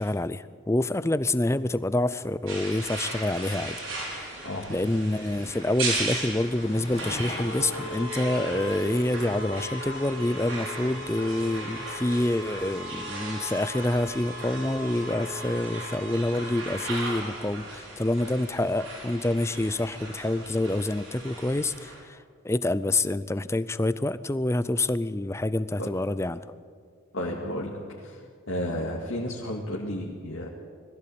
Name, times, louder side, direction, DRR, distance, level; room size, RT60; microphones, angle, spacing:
voice 1, 0.0-4.4 4.7-22.2 22.4-26.5, left 1 dB, 15° left, 15 dB, 0.5 m, -27 dB
sound 1, 1.4-14.9, left 2 dB, 30° left, 1.4 m, -47 dB
sound 2, 2.5-22.0, right 2 dB, 80° right, 5.9 m, -36 dB
voice 2, 4.4-4.8 25.8-25.9 27.1-28.2 28.5-30.5, left 1 dB, 70° left, -3 dB, 2.1 m, -32 dB
21.0 x 14.5 x 8.6 m, 2.1 s
head